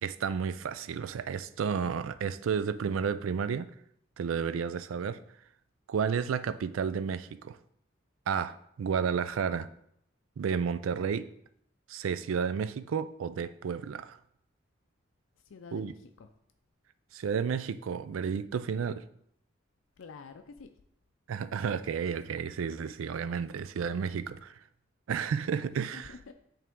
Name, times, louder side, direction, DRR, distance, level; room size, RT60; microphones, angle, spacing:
voice 1, 0.0-3.7 4.2-5.2 5.9-7.6 8.3-9.7 10.4-11.3 11.9-14.2 15.7-15.9 17.1-19.0 21.3-24.5 25.1-26.1, right 6 dB, 80° right, 13 dB, 0.4 m, -32 dB
voice 2, 15.5-16.3 20.0-20.7 25.9-26.3, left 5 dB, 75° left, 6 dB, 0.4 m, -48 dB
8.4 x 3.4 x 3.6 m, 0.71 s
head